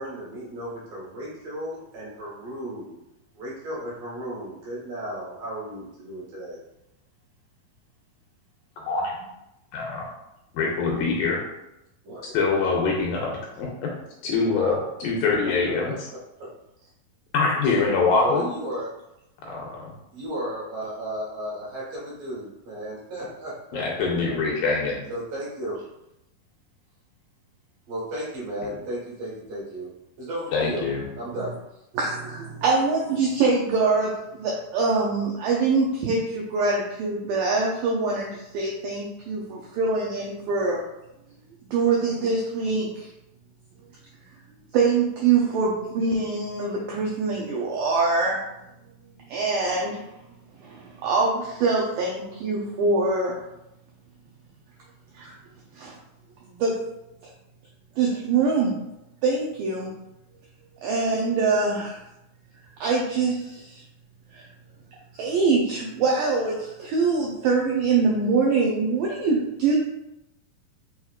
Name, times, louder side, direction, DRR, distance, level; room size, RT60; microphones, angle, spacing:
voice 1, 0.0-2.9 3.3-6.6 12.0-12.4 16.4-16.5 16.8-16.9 18.2-18.9 20.1-24.1 25.1-25.9 27.9-29.9 30.2-30.8 31.2-31.6, right 1 dB, 65° right, -7 dB, 3.1 m, -34 dB
voice 2, 8.8-9.3 9.7-10.1 10.5-11.4 12.3-13.9 14.2-16.1 17.3-18.5 19.4-19.9 23.7-25.0 30.5-31.1, left 4 dB, 85° left, -2 dB, 2.1 m, -24 dB
voice 3, 32.0-40.8 41.7-43.1 44.7-48.4 49.3-50.0 50.6-53.4 55.2-55.3 55.8-55.9 56.6-56.8 58.0-58.7 59.2-59.9 60.8-62.0 62.8-63.8 64.3-64.4 65.1-69.8, right 4 dB, 85° right, -2 dB, 1.9 m, -24 dB
6.3 x 2.9 x 2.4 m, 0.89 s
omnidirectional pair, 4.4 m